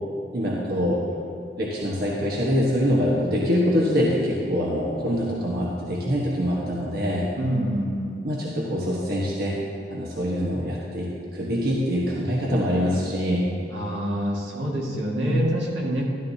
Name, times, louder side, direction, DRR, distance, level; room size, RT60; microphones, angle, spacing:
voice 1, 0.3-1.0 1.6-7.3 8.2-9.6 9.9-13.5 15.1-15.5, equal, 60° right, -5 dB, 1.3 m, -24 dB
voice 2, 7.4-8.2 13.7-16.1, equal, 80° right, -3 dB, 1.9 m, -26 dB
13.0 x 12.0 x 2.8 m, 2.3 s
head